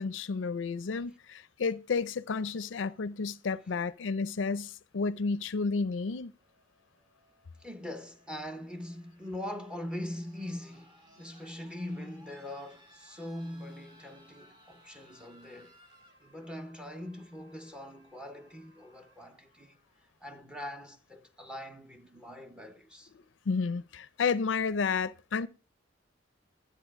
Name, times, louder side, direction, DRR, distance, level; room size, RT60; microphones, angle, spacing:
voice 1, 0.0-6.3 23.5-25.5, left 4 dB, 75° left, 0.5 m, -31 dB
sound 1, 6.3-20.3 21.5-21.6, equal, 25° right, 1.9 m, -62 dB
voice 2, 7.6-15.8 16.2-19.8 20.2-23.1, left 1 dB, 5° right, 0.8 m, -42 dB
12.0 x 8.5 x 3.6 m
head